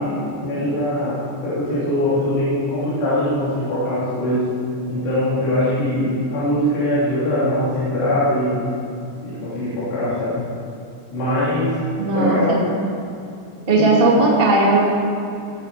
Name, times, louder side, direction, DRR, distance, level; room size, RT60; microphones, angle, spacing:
voice 1, 0.0-4.5 4.9-8.7 9.2-10.4 11.1-11.8 12.1-12.6 13.6-13.9, left 1 dB, 75° left, -11 dB, 5.3 m, -22 dB
voice 2, 12.0-12.6 13.7-14.9, right 2 dB, 35° right, -3 dB, 0.8 m, -16 dB
19.5 x 8.6 x 4.8 m, 2.6 s
omnidirectional pair, 4.9 m